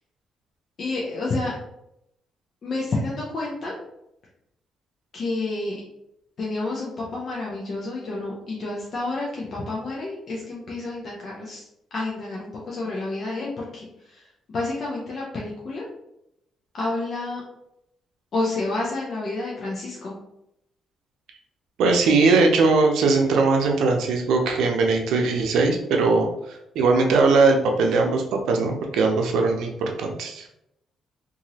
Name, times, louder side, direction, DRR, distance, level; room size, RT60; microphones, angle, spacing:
voice 1, 0.8-1.5 2.6-3.7 5.1-5.8 6.4-15.8 16.7-17.4 18.3-20.1, left 2 dB, 50° left, -4 dB, 0.7 m, -29 dB
voice 2, 21.8-26.2 26.7-30.5, right 3 dB, 80° right, 2 dB, 0.6 m, -20 dB
2.9 x 2.6 x 2.7 m, 0.81 s
cardioid pair, 90°, 0 cm